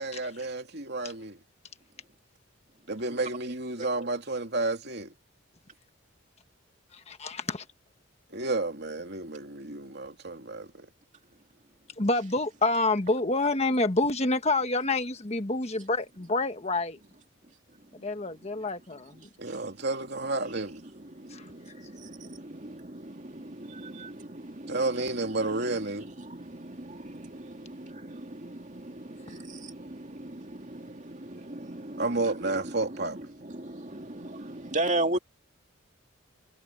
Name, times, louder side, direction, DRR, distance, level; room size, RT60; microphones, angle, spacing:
voice 1, 0.0-1.4 2.9-5.1 8.3-10.9 19.4-20.8 24.7-26.1 32.0-33.2, right 2 dB, 55° right, 3.0 m, -31 dB
voice 2, 7.2-7.6 12.0-17.0 18.0-19.2 21.3-21.5, left 2 dB, 30° left, 1.4 m, -27 dB
voice 3, 19.4-19.8 20.8-35.2, right 2 dB, 35° right, 2.5 m, -37 dB
head